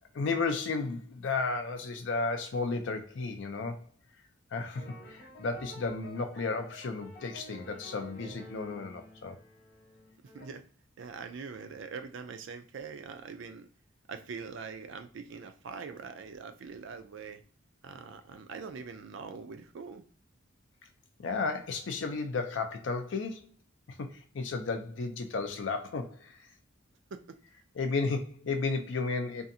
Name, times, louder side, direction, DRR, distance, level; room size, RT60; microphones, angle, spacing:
voice 1, 0.1-3.8 4.5-9.4 21.2-23.5 23.9-26.5 27.8-29.5, left 4 dB, 65° left, 6 dB, 0.5 m, -33 dB
sound 1, 4.8-10.5, equal, 45° left, 0.9 m, -50 dB
voice 2, 11.0-13.7 14.1-17.4 17.8-20.0 27.1-27.4, right 5 dB, 65° right, 8 dB, 0.4 m, -43 dB
2.6 x 2.4 x 2.6 m, 0.41 s
head